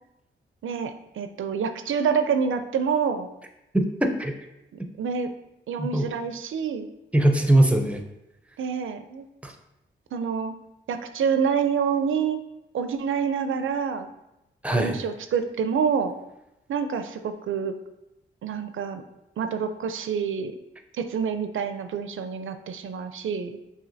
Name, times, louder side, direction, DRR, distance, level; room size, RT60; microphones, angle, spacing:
voice 1, 0.6-3.3 5.0-5.3 5.7-6.9 8.6-9.2 10.1-10.5 10.9-12.4 12.7-14.1 14.7-16.1 16.7-17.8 18.4-19.0 19.4-20.5 20.9-23.6, right 6 dB, 75° right, 9 dB, 0.4 m, -27 dB
voice 2, 3.7-4.3 5.8-6.1 7.1-8.0 9.4-9.5 14.6-15.0, right 1 dB, 5° right, 5 dB, 0.5 m, -21 dB
5.5 x 2.8 x 2.6 m, 0.90 s
cardioid pair, 65°, 21 cm